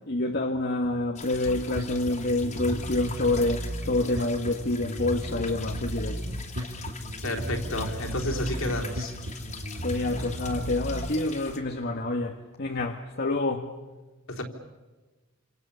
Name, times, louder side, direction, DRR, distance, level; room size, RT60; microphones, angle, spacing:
voice 1, 0.0-6.3 9.8-13.7, left 2 dB, 50° left, 3 dB, 1.6 m, -28 dB
sound 1, 1.2-11.6, left 5 dB, 35° left, 2.8 m, -43 dB
Bass guitar, 1.3-10.9, right 1 dB, 70° right, 5.1 m, -35 dB
voice 2, 7.2-9.2 14.3-14.4, left 1 dB, 65° left, 2 dB, 3.7 m, -30 dB
28.5 x 27.5 x 7.0 m, 1.2 s
head